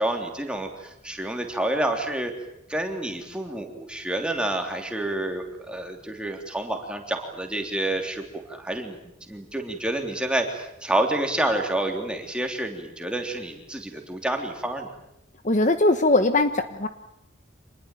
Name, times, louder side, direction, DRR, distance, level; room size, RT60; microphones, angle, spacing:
voice 1, 0.0-2.3 2.7-9.0 9.3-14.9, right 1 dB, 5° right, 3 dB, 3.3 m, -28 dB
voice 2, 15.4-16.9, left 2 dB, 35° left, 9 dB, 1.1 m, -20 dB
26.5 x 20.5 x 9.2 m, 0.83 s
head